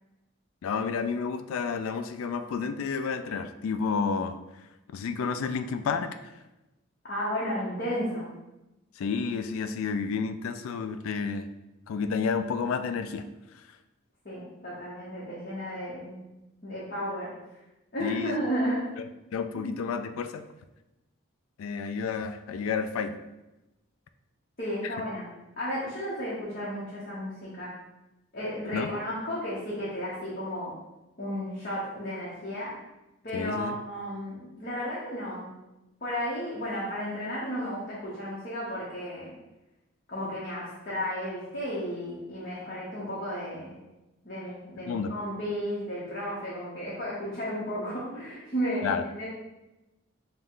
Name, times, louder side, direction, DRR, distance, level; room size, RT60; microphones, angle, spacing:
voice 1, 0.6-4.4 4.9-6.3 9.0-11.5 11.9-13.3 13.5-13.7 18.0-18.4 19.3-20.5 21.6-23.2 24.8-24.9 28.7-29.0 33.3-33.7 44.9-45.2 48.8-49.0, left 5 dB, 80° left, 9 dB, 0.3 m, -30 dB
voice 2, 7.1-8.3 14.2-16.2 16.6-17.3 17.9-18.8 19.5-19.7 24.6-25.2 25.6-27.7 28.3-30.7 31.2-32.7 33.2-35.5 36.0-39.3 40.1-43.8 44.2-49.2, equal, 45° left, -8 dB, 1.0 m, -33 dB
5.2 x 2.3 x 3.7 m, 1.0 s
head